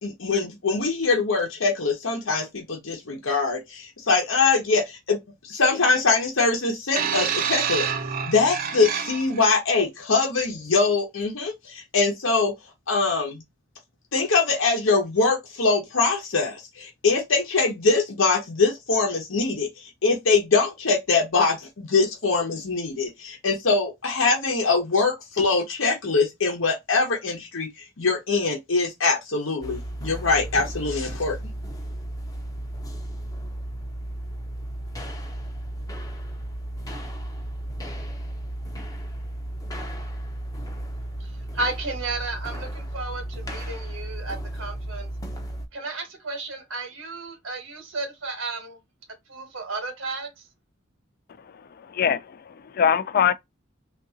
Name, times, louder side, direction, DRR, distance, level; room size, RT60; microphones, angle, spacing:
voice 1, 0.0-5.2 5.5-7.9 8.3-12.5 12.9-13.4 14.1-19.7 20.0-27.7 28.0-31.3, left 4 dB, 75° left, 0.9 m, -23 dB
sound 1, 7.0-9.5 10.4-10.6, right 8 dB, 45° right, 0.5 m, -28 dB
sound 2, 29.6-45.7, right 1 dB, 20° left, 0.7 m, -34 dB
voice 2, 41.2-45.1 45.7-48.8 49.3-50.3, right 3 dB, 75° right, 1.1 m, -33 dB
voice 3, 51.8-53.3, left 7 dB, 50° left, 0.4 m, -23 dB
3.5 x 2.6 x 2.7 m
head